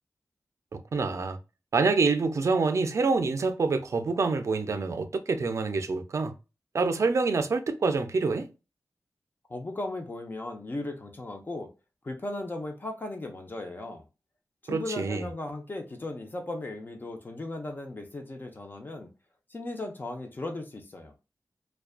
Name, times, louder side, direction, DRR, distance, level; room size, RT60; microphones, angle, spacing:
voice 1, 0.7-1.4 1.7-6.3 6.7-8.5 14.7-15.2, right 4 dB, 60° right, 0.4 m, -26 dB
voice 2, 9.5-11.7 12.0-14.0 14.6-19.1 19.5-21.1, left 2 dB, 35° left, 0.5 m, -37 dB
2.4 x 2.2 x 2.3 m
wide cardioid pair, 95°, 6 cm